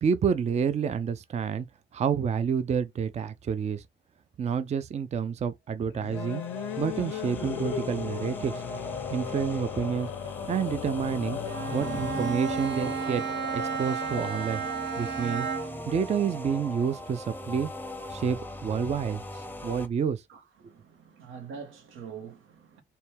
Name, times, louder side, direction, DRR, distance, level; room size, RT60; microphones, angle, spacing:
voice 1, 0.0-1.7 1.9-3.8 4.4-6.4 6.8-8.5 9.1-10.1 10.5-11.4 11.7-13.2 13.5-14.6 15.0-17.7 18.1-20.2, right 7 dB, 35° right, 0.4 m, -29 dB
sound 1, 5.9-14.7, left 12 dB, 85° left, 0.5 m, -37 dB
sound 2, 6.1-19.9, left 1 dB, 10° left, 0.6 m, -39 dB
Bowed string instrument, 11.4-15.9, right 6 dB, 60° right, 1.0 m, -33 dB
voice 2, 20.3-22.8, right 7 dB, 85° right, 1.0 m, -44 dB
4.2 x 2.2 x 3.4 m
cardioid pair, 90°, 20 cm